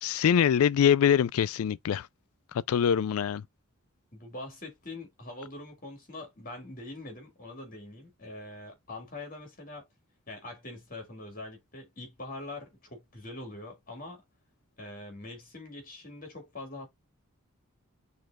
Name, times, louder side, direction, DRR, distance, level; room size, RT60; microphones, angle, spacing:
voice 1, 0.0-2.1 2.7-3.4, left 8 dB, 75° left, 0.3 m, -24 dB
voice 2, 4.1-9.9 10.3-14.2 14.8-16.9, left 2 dB, 40° left, 2.2 m, -43 dB
6.3 x 3.2 x 2.4 m
head